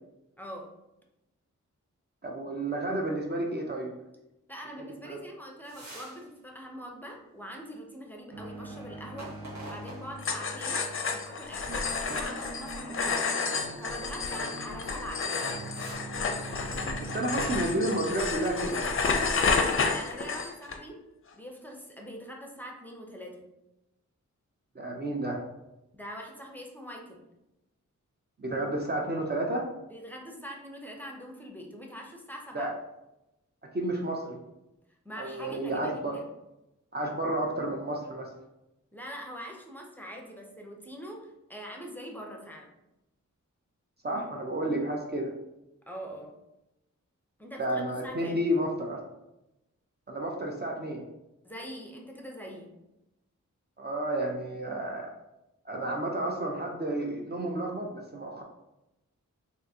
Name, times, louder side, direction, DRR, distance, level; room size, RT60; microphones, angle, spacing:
voice 1, 0.4-0.7 4.5-9.3 9.7-10.8 11.1-15.4 19.5-21.0 21.3-23.4 25.9-27.2 29.9-32.7 35.0-36.2 38.9-42.7 45.9-46.3 47.4-48.4 51.4-52.7, equal, 5° left, 0 dB, 0.7 m, -43 dB
voice 2, 2.2-3.9 5.0-5.2 17.0-19.0 24.8-25.4 28.4-29.7 32.5-32.7 33.7-34.4 35.2-36.1 36.9-38.3 44.0-45.3 47.6-49.0 50.1-51.0 53.8-55.1 55.7-58.4, right 1 dB, 35° right, 0 dB, 0.6 m, -31 dB
sound 1, 5.6-6.2 6.6-6.7 9.1-10.5 11.1-11.3 12.1-12.9 14.7-15.0 15.3-15.9, right 1 dB, 65° right, 1.3 m, -46 dB
sound 2, 8.3-18.7, right 2 dB, 90° right, 0.9 m, -43 dB
sound 3, 10.2-20.8, left 4 dB, 45° left, 0.5 m, -30 dB
3.7 x 2.6 x 2.7 m, 0.93 s
cardioid pair, 55°, 31 cm